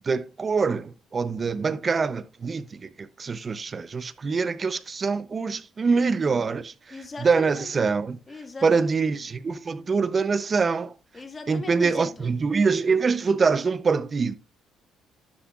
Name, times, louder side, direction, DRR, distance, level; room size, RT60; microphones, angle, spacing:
voice 1, 0.0-6.7 7.2-8.2 8.6-10.9 11.5-14.3, right 5 dB, 30° right, 0.6 m, -24 dB
voice 2, 6.9-7.7 8.3-8.9 11.1-12.3, left 3 dB, 25° left, 1.9 m, -39 dB
12.0 x 8.0 x 2.4 m
cardioid pair, 115°, 0 cm